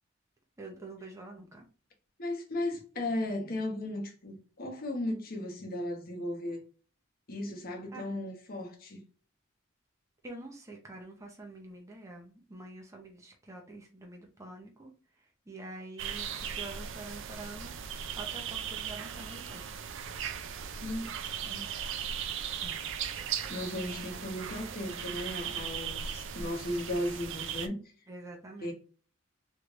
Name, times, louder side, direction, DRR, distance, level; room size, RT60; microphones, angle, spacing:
voice 1, 0.6-1.7 7.9-8.0 10.2-14.9 15.5-17.7 18.1-19.6 22.6-22.8 23.8-24.2 28.1-28.7, right 2 dB, 15° right, 0.6 m, -46 dB
voice 2, 2.2-6.6 7.3-9.0 20.8-21.6 23.5-27.8 28.6-28.7, left 1 dB, 45° left, 1.0 m, -36 dB
sound 1, 16.0-27.7, right 8 dB, 65° right, 0.4 m, -38 dB
3.3 x 3.1 x 2.5 m
head